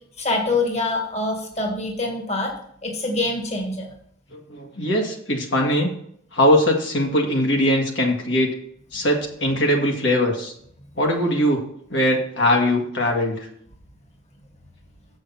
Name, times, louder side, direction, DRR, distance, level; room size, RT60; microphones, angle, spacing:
voice 1, 0.2-2.5 2.8-3.9, left 2 dB, 35° left, 1 dB, 1.6 m, -25 dB
voice 2, 4.3-5.9 6.3-8.5 8.9-10.5 11.0-11.6 11.9-13.5, left 1 dB, 65° left, 0 dB, 1.8 m, -21 dB
7.5 x 6.3 x 5.7 m, 0.66 s
head